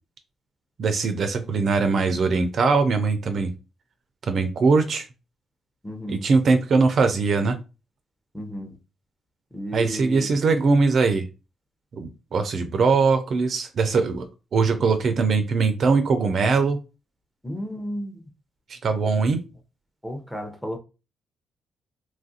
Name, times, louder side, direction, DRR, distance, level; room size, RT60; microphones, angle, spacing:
voice 1, 0.8-3.5 4.3-5.1 6.1-7.6 9.7-11.3 11.9-14.2 14.5-16.8 18.7-19.4, right 4 dB, 55° right, 0.4 m, -21 dB
voice 2, 5.8-6.3 8.3-8.8 9.5-10.3 17.4-18.3 20.0-20.8, equal, 5° left, 0.7 m, -33 dB
3.0 x 2.4 x 2.7 m
cardioid pair, 90°, 0 cm